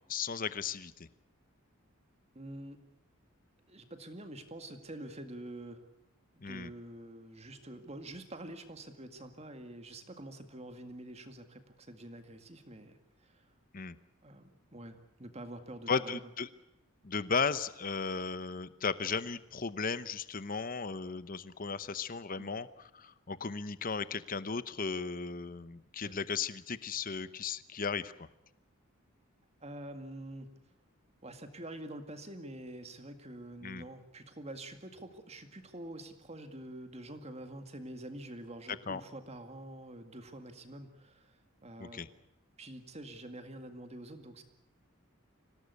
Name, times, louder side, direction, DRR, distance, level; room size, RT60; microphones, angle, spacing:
voice 1, 0.1-0.9 6.4-6.7 13.7-14.0 15.9-16.5 17.0-28.3 33.6-33.8 38.9-39.0 41.8-42.1, left 5 dB, 40° left, 15 dB, 0.9 m, -35 dB
voice 2, 2.3-2.8 3.7-5.8 6.5-13.4 14.2-16.2 22.4-22.5 26.0-26.1 29.6-30.5 31.2-42.0 42.6-44.4, right 1 dB, 30° right, 7 dB, 2.1 m, -46 dB
25.5 x 17.5 x 8.3 m, 0.89 s
head